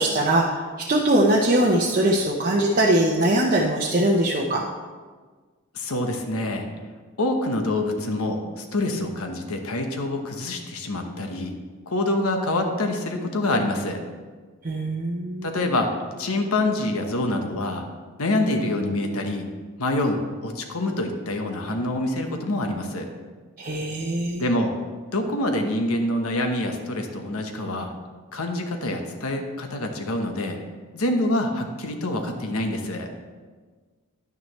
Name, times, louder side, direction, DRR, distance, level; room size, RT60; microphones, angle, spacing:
voice 1, 0.0-4.7 14.6-15.6 23.6-24.4, right 1 dB, 40° right, -3 dB, 0.7 m, -21 dB
voice 2, 5.7-6.7 7.2-11.6 11.9-14.0 15.4-15.9 16.2-17.9 18.2-19.5 19.8-23.1 24.4-24.8 25.1-27.9 28.3-30.6 30.9-33.1, left 1 dB, 75° left, 4 dB, 1.1 m, -26 dB
11.0 x 9.4 x 3.2 m, 1.4 s
head